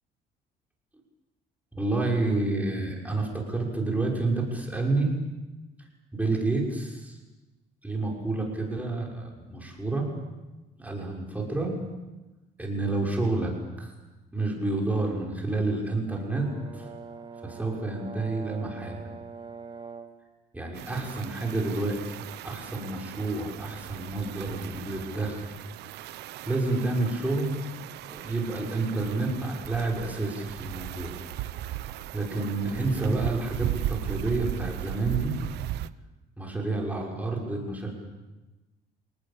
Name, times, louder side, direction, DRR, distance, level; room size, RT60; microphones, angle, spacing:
voice 1, 1.7-5.1 6.1-7.2 7.8-10.1 10.8-11.8 12.6-13.5 13.8-13.9 14.3-16.9 17.4-19.0 20.5-22.1 22.4-25.4 26.5-27.6 28.0-31.2 32.1-35.4 36.4-37.9, right 2 dB, 10° right, -1 dB, 6.3 m, -29 dB
Brass instrument, 16.1-20.2, right 5 dB, 30° right, 2.9 m, -43 dB
sound 1, 20.7-35.9, right 14 dB, 80° right, 0.9 m, -37 dB
28.0 x 19.0 x 8.7 m, 1.1 s
cardioid pair, 110°, 17 cm